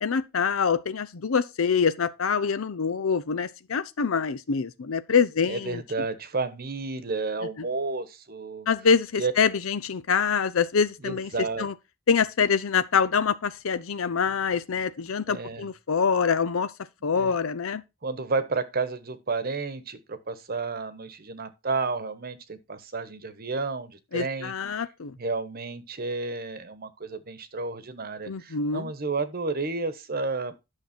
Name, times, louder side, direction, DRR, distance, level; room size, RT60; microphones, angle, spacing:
voice 1, 0.0-5.8 8.7-11.3 11.6-11.7 12.1-16.7 17.0-17.8 24.1-25.1 28.3-28.9, left 6 dB, 80° left, 0.6 m, -25 dB
voice 2, 5.5-8.7 9.2-9.3 11.0-11.7 15.3-15.7 17.1-17.4 18.0-24.5 25.2-30.5, right 3 dB, 45° right, 1.1 m, -31 dB
9.6 x 6.5 x 4.3 m
head